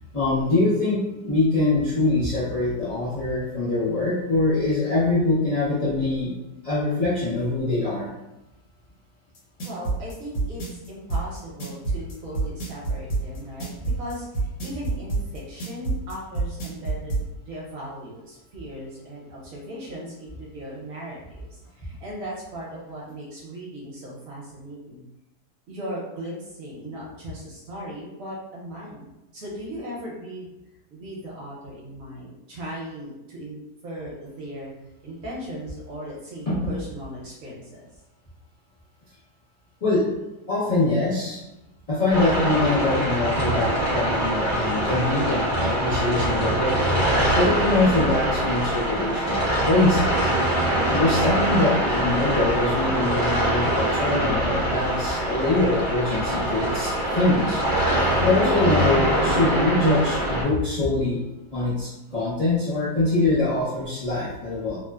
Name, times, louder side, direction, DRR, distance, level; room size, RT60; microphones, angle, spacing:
voice 1, 0.1-6.3 6.6-8.1 36.5-36.7 39.8-40.0 40.5-41.4 41.9-46.7 47.4-50.3 50.9-57.6 58.2-61.2 61.5-64.8, left 2 dB, 40° left, -10 dB, 0.5 m, -23 dB
sound 1, 9.3-17.2, right 3 dB, 75° left, 1.3 m, -27 dB
voice 2, 9.6-13.7 14.0-25.1 25.7-30.5 30.9-34.7 35.0-37.9, equal, 65° right, -4 dB, 1.1 m, -38 dB
sound 2, 42.1-60.4, right 1 dB, 15° right, 0.8 m, -23 dB
2.9 x 2.0 x 2.3 m, 0.95 s
omnidirectional pair, 1.7 m